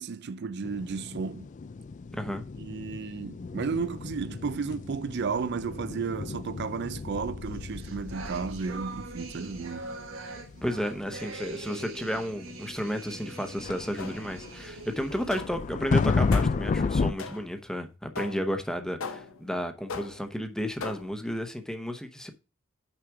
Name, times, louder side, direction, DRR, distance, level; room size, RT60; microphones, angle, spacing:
voice 1, 0.0-1.5 2.6-9.9, right 5 dB, 55° right, 0.5 m, -33 dB
sound 1, 0.6-17.1, left 4 dB, 40° left, 0.4 m, -33 dB
voice 2, 2.1-2.5 10.6-22.3, equal, 5° left, 0.9 m, -32 dB
sound 2, 7.5-15.4, right 3 dB, 75° right, 1.5 m, -43 dB
sound 3, 14.0-14.5 15.3-15.7 16.3-16.7 17.2-17.7 18.2-18.6 19.0-19.5 19.9-20.4 20.8-21.3, left 4 dB, 90° left, 0.9 m, -39 dB
6.0 x 5.0 x 4.7 m
head